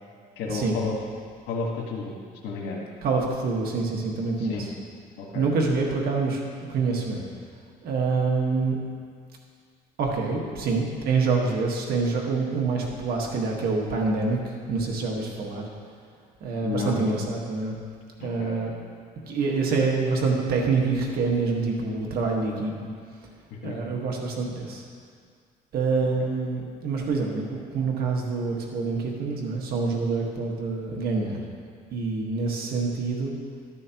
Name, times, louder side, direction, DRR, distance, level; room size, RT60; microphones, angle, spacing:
voice 1, 0.4-0.9 1.5-2.1 2.4-2.8 4.4-4.6 5.2-5.5 16.6-17.2 18.2-18.5 23.5-23.8, left 4 dB, 85° left, -3 dB, 1.6 m, -31 dB
voice 2, 3.0-4.7 5.3-6.4 6.7-7.2 7.8-8.8 10.0-15.7 16.4-17.8 18.2-18.7 19.3-22.9 23.6-24.8 25.7-31.4 31.9-33.3, right 4 dB, 65° right, -1 dB, 1.6 m, -26 dB
12.5 x 10.5 x 3.0 m, 2.1 s
cardioid pair, 110°, 17 cm